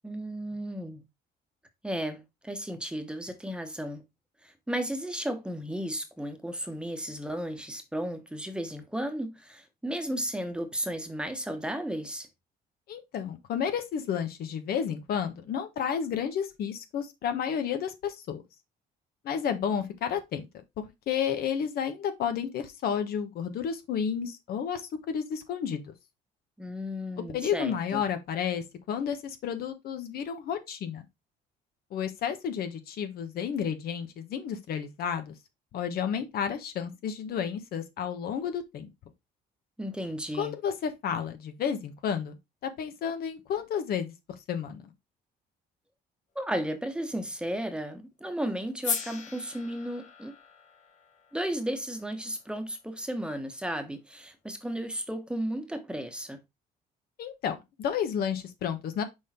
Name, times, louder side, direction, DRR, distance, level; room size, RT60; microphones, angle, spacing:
voice 1, 0.0-1.0 1.8-4.0 4.4-12.3 26.6-28.0 39.8-40.5 46.3-50.3 51.3-56.4, equal, 5° right, 1.2 m, -34 dB
voice 2, 12.9-18.4 19.2-20.5 20.8-25.9 27.3-31.0 31.9-35.3 35.7-38.9 40.4-42.4 42.6-44.1 44.5-44.9 57.2-59.0, left 8 dB, 65° left, 1.2 m, -31 dB
sound 1, 48.8-53.0, left 6 dB, 45° left, 1.4 m, -38 dB
6.1 x 3.9 x 4.3 m
cardioid pair, 110°, 17 cm